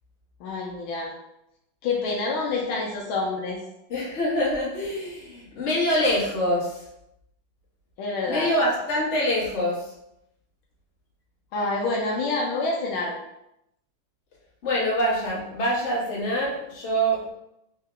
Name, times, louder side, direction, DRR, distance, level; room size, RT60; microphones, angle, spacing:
voice 1, 0.4-1.1 1.8-3.6 8.0-8.5 11.5-13.1, left 3 dB, 80° left, -2 dB, 1.4 m, -27 dB
voice 2, 3.9-6.8 8.2-9.9 14.6-17.3, equal, 40° left, -6 dB, 1.2 m, -25 dB
3.8 x 2.7 x 3.4 m, 0.83 s
omnidirectional pair, 2.3 m